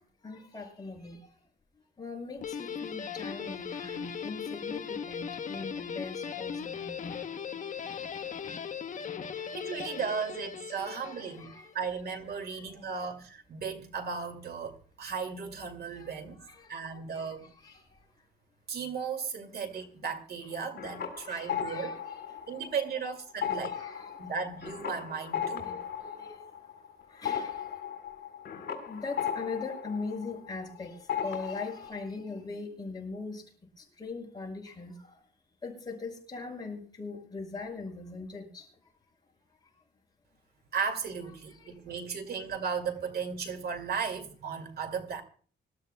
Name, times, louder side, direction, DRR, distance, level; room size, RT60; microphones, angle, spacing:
voice 1, 0.2-1.2 2.0-7.2 8.1-8.2 9.3-9.5 10.1-10.2 10.7-11.7 12.7-12.8 15.9-17.8 21.0-22.4 23.4-24.2 25.6-26.3 27.1-27.7 28.9-33.4 33.8-35.1 35.6-38.7 41.5-41.7, left 3 dB, 20° left, 6.4 m, -41 dB
Guitar, 2.4-11.7, left 7 dB, 45° left, 0.9 m, -38 dB
voice 2, 9.5-16.4 16.7-17.5 18.7-22.0 22.5-23.7 24.2-25.8 40.7-45.2, right 6 dB, 60° right, 2.3 m, -36 dB
sound 1, 20.5-23.0 23.3-30.8 31.1-31.9, left 8 dB, 70° left, 3.4 m, -36 dB
25.5 x 13.0 x 2.2 m
cardioid pair, 135°, 18 cm